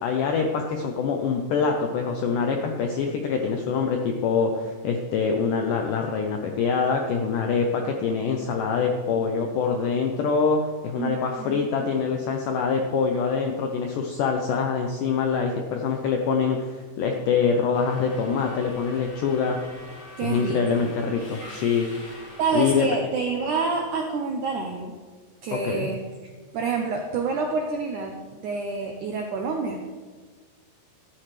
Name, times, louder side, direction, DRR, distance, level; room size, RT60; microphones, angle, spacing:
voice 1, 0.0-19.8 20.2-22.9 25.5-25.9, left 5 dB, 80° left, 3 dB, 1.8 m, -25 dB
voice 2, 11.0-11.6 20.2-20.9 22.4-24.9 25.4-26.0 26.5-29.8, right 4 dB, 85° right, 2 dB, 1.8 m, -28 dB
Subway metro underground, 17.7-22.7, left 1 dB, 30° left, 4.2 m, -44 dB
13.0 x 12.0 x 3.3 m, 1.5 s
omnidirectional pair, 4.7 m